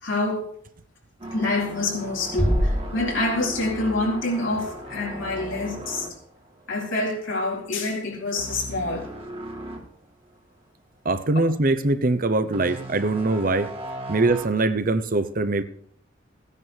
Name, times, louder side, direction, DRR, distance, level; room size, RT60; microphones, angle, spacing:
voice 1, 0.0-0.5 1.3-6.1 6.7-9.1, left 2 dB, 80° left, 4.6 m, -26 dB
sound 1, 1.2-7.3 7.6-7.8 8.4-9.9 10.3-10.4 12.5-14.5, right 1 dB, 30° right, 2.0 m, -37 dB
sound 2, 2.4-4.3, equal, 10° left, 2.5 m, -26 dB
voice 2, 11.0-13.7 14.1-15.6, right 2 dB, 45° right, 0.8 m, -22 dB
15.5 x 9.9 x 4.6 m
head